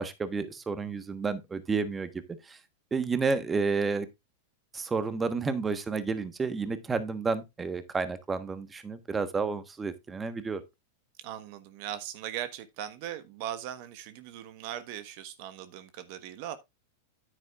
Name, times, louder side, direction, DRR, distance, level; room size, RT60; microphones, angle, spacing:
voice 1, 0.0-2.1 2.5-2.6 2.9-4.1 4.7-10.6, right 4 dB, 15° right, 1.3 m, -30 dB
voice 2, 11.2-16.6, right 11 dB, 55° right, 1.3 m, -39 dB
9.8 x 9.1 x 2.4 m
hypercardioid pair, 110°, 0 cm